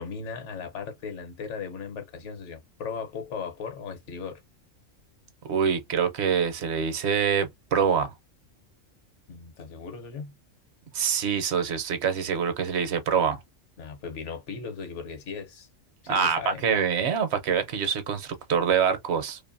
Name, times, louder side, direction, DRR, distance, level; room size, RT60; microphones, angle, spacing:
voice 1, 0.0-4.4 9.3-10.3 13.8-15.7 16.0-16.6, left 5 dB, 65° left, 1.1 m, -37 dB
voice 2, 5.4-8.1 10.9-13.4 16.1-19.4, right 7 dB, 65° right, 0.8 m, -25 dB
2.6 x 2.5 x 2.5 m
omnidirectional pair, 1.3 m